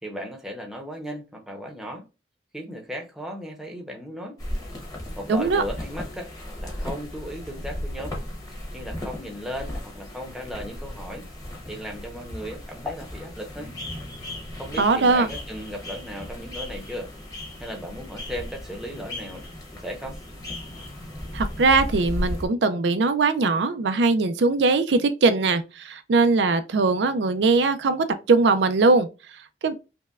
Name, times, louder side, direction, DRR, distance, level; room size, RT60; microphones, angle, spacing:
voice 1, 0.0-2.1 2.5-4.4 5.2-6.3 6.6-8.1 8.7-11.3 11.7-13.7 14.6-17.1 17.6-19.5 19.7-20.2, equal, 5° right, 0.7 m, -36 dB
sound 1, 4.4-22.5, left 1 dB, 20° left, 1.0 m, -36 dB
voice 2, 5.3-5.6 14.8-15.3 21.3-29.7, right 3 dB, 85° right, 0.4 m, -21 dB
5.2 x 2.2 x 2.3 m
head